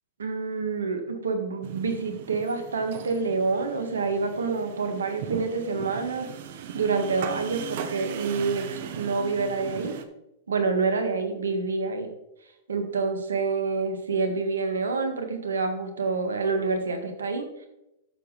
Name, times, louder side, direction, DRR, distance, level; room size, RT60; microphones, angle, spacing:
voice 1, 0.2-6.3 6.7-9.9 10.5-12.1 12.7-17.7, right 4 dB, 85° right, 6 dB, 1.7 m, -27 dB
sound 1, 1.6-10.0, right 8 dB, 60° right, 1.0 m, -38 dB
12.0 x 7.4 x 3.3 m, 0.89 s
hypercardioid pair, 105°, 0 cm